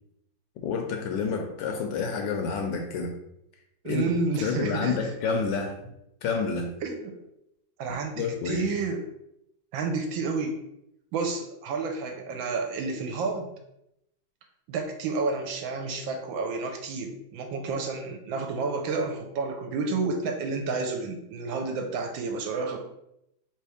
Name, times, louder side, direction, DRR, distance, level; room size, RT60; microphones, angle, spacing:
voice 1, 0.6-3.1 3.8-4.0 4.4-5.9 6.2-6.7 8.2-8.7, left 5 dB, 75° left, 3 dB, 1.2 m, -29 dB
voice 2, 3.8-5.0 6.8-7.2 7.8-9.0 9.7-10.6 11.1-13.5 14.7-22.8, right 4 dB, 75° right, 4 dB, 1.3 m, -30 dB
3.4 x 3.0 x 4.8 m, 0.80 s
omnidirectional pair, 2.3 m